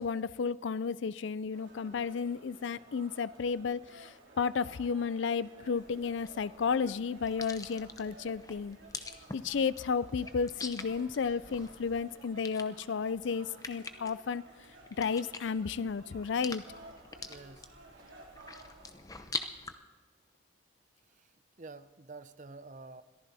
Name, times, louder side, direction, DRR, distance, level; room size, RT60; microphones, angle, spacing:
voice 1, 0.0-8.8 9.3-14.4 15.0-16.6, left 5 dB, 65° left, 18 dB, 0.4 m, -33 dB
sound 1, 1.5-18.9, right 2 dB, 75° right, 3.3 m, -55 dB
sound 2, 5.8-19.7, left 3 dB, 15° left, 0.8 m, -45 dB
voice 2, 17.3-17.7 21.1-21.3 21.6-23.0, right 3 dB, 40° right, 13 dB, 0.6 m, -48 dB
22.0 x 14.5 x 4.2 m, 1.4 s
head